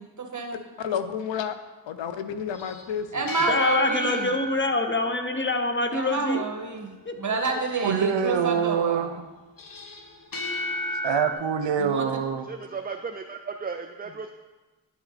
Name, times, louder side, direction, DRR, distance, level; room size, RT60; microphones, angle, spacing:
voice 1, 0.0-0.6 3.1-4.3 5.9-6.9 7.2-9.1 11.8-12.1, right 4 dB, 40° right, 1 dB, 1.6 m, -28 dB
voice 2, 0.8-1.6 1.9-3.2, left 7 dB, 85° left, 10 dB, 0.7 m, -30 dB
sound 1, 2.5-6.0 9.6-11.3, left 1 dB, 50° left, 1.2 m, -33 dB
voice 3, 3.5-6.4 7.1-7.2, left 2 dB, 25° left, 6 dB, 0.8 m, -25 dB
voice 4, 7.8-9.2 11.0-12.5, right 7 dB, 75° right, 8 dB, 0.7 m, -25 dB
voice 5, 12.5-14.3, right 5 dB, 20° right, 6 dB, 0.4 m, -35 dB
10.5 x 5.9 x 4.1 m, 1.2 s
cardioid pair, 70°, 44 cm